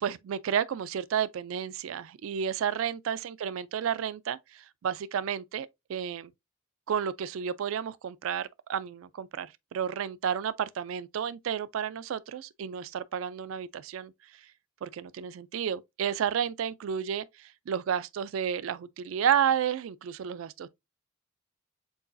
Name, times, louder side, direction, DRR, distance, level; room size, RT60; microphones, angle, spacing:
voice 1, 0.0-6.3 6.9-14.1 14.8-20.7, right 8 dB, 75° right, 0.3 m, -31 dB
4.7 x 3.9 x 2.5 m
head